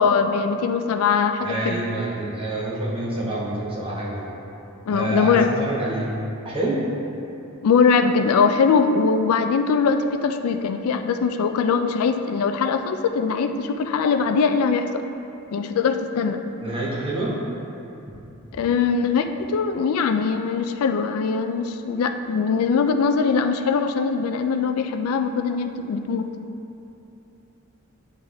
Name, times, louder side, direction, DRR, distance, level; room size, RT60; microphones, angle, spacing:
voice 1, 0.0-1.8 4.9-5.5 7.6-15.0 15.5-16.4 18.5-26.3, left 5 dB, 75° left, 8 dB, 0.3 m, -21 dB
voice 2, 1.4-4.3 4.9-6.1 6.4-6.8 16.6-17.4, right 1 dB, 25° right, -6 dB, 1.3 m, -27 dB
10.0 x 3.5 x 3.4 m, 2.9 s
head